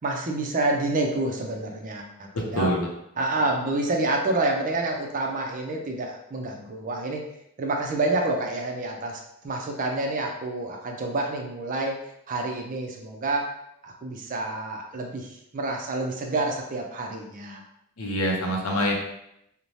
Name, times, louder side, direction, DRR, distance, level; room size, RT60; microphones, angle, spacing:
voice 1, 0.0-2.7 3.2-7.2 7.6-12.0 12.3-13.5 13.8-17.6, right 2 dB, 35° right, 2 dB, 0.4 m, -28 dB
voice 2, 2.3-2.9 18.0-18.9, equal, 70° left, -1 dB, 0.6 m, -25 dB
2.6 x 2.1 x 3.1 m, 0.79 s
head